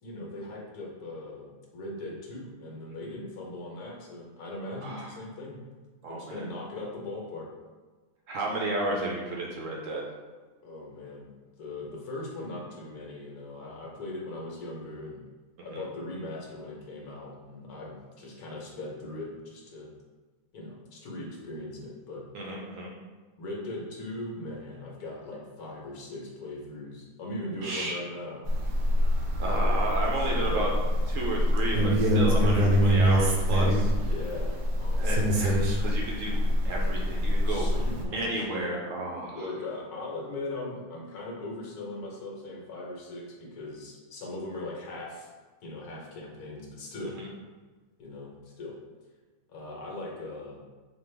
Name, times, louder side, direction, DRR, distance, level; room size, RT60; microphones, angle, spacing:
voice 1, 0.0-5.6 6.1-7.5 10.6-11.3 11.6-15.2 15.6-19.9 20.5-22.2 23.4-28.4 30.3-30.8 33.9-35.6 37.4-38.5 39.3-45.3 45.6-47.2 48.0-48.8 49.5-50.6, left 2 dB, 70° left, -2 dB, 1.4 m, -39 dB
voice 2, 6.0-6.5 8.3-10.0 15.7-15.8 22.3-22.9 27.6-27.9 29.4-30.7 31.1-34.1 34.9-37.7 38.1-39.4 47.2-47.3, right 2 dB, 60° right, -2 dB, 0.9 m, -32 dB
sound 1, 28.5-38.0, equal, 90° right, 1.3 m, -25 dB
5.3 x 2.4 x 3.3 m, 1.4 s
omnidirectional pair, 1.7 m